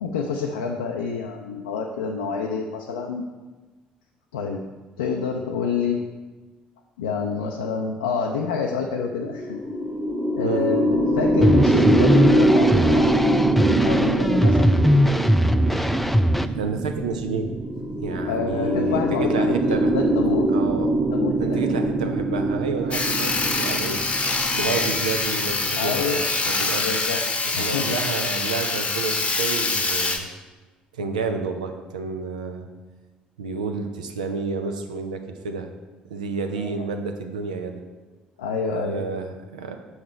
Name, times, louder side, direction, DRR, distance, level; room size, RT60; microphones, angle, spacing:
voice 1, 0.0-3.2 4.3-4.6 5.0-6.0 7.0-9.6 10.4-10.9 11.1-13.2 13.8-14.7 18.3-20.5 21.1-21.7 24.6-24.9 25.7-26.2 26.8-27.2 27.5-28.0 36.6-36.9 38.4-39.0, left 5 dB, 75° left, 1 dB, 0.4 m, -27 dB
sound 1, 9.1-26.6, right 1 dB, 20° right, 1.1 m, -23 dB
sound 2, 11.4-16.5, equal, 5° left, 0.3 m, -20 dB
voice 2, 16.4-17.5 17.8-19.9 20.5-24.0 24.5-26.9 27.6-30.3 30.9-32.7 33.4-35.7 36.1-37.8 38.7-39.8, right 4 dB, 80° right, 5 dB, 0.6 m, -30 dB
Sawing, 22.9-30.2, left 3 dB, 30° left, 0.8 m, -25 dB
6.4 x 5.6 x 4.3 m, 1.3 s
figure-of-eight pair, 50°, 4 cm